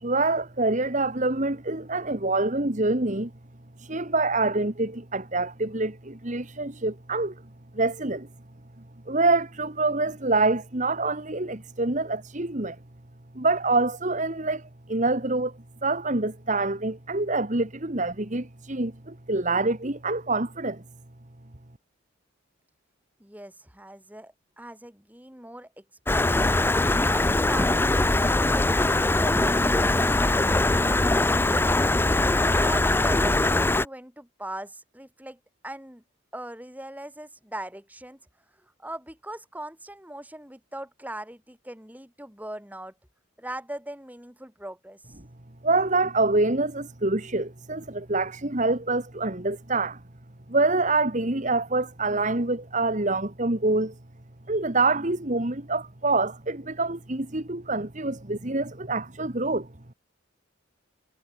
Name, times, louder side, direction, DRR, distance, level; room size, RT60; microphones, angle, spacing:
voice 1, 0.0-3.3 3.8-7.3 7.7-8.3 9.1-12.8 13.4-15.5 15.8-20.8 45.6-50.0 50.5-53.9 54.5-59.7, right 2 dB, 40° right, 1.8 m, -26 dB
voice 2, 23.2-26.6 27.1-36.0 36.3-38.2 38.6-42.9 43.4-45.0, right 1 dB, 10° right, 6.3 m, -40 dB
Stream, 26.1-33.9, left 2 dB, 10° left, 0.5 m, -22 dB
head